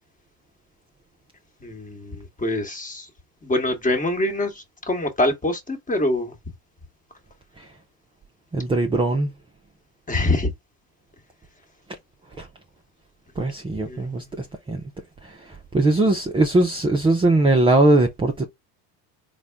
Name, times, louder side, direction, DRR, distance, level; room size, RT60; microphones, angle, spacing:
voice 1, 1.6-3.1 3.4-6.3 10.1-10.5 13.8-14.5, left 1 dB, 15° left, 1.2 m, -25 dB
voice 2, 8.5-9.3 12.4-12.5 13.4-14.2 14.7-14.8 15.7-18.4, right 2 dB, 10° right, 0.4 m, -19 dB
4.1 x 2.2 x 3.4 m
supercardioid pair, 95°, 50 cm